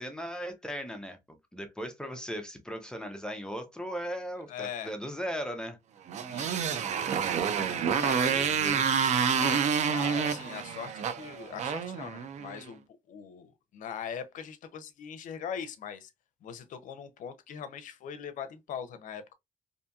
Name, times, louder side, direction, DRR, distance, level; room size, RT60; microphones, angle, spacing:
voice 1, 0.0-5.8 7.9-8.8, equal, 5° left, 0.5 m, -38 dB
voice 2, 4.5-4.9 6.3-7.0 7.3-8.5 9.4-16.1 16.4-19.3, left 8 dB, 70° left, 0.5 m, -41 dB
Motorcycle, 6.1-12.6, right 7 dB, 55° right, 0.4 m, -28 dB
2.7 x 2.6 x 2.2 m
cardioid pair, 135°, 14 cm